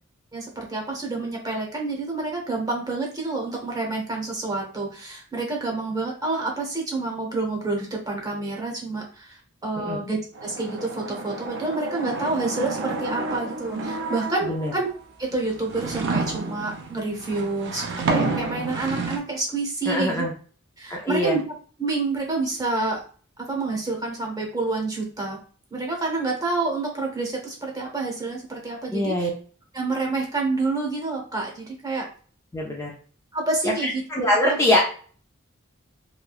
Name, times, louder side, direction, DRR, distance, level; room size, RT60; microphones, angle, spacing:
voice 1, 0.3-14.9 15.2-20.2 20.8-21.4 21.8-23.0 23.4-25.4 25.7-29.3 29.7-32.0 33.3-34.0 34.3-34.6, right 3 dB, 20° right, -1 dB, 0.8 m, -28 dB
sound 1, 10.4-14.7 15.3-19.2, right 3 dB, 60° right, 0.5 m, -30 dB
voice 2, 19.9-20.3 20.9-21.4 28.9-29.3 32.5-32.9 33.8-34.8, left 1 dB, 15° left, -2 dB, 0.4 m, -23 dB
3.1 x 2.2 x 2.3 m, 0.42 s
head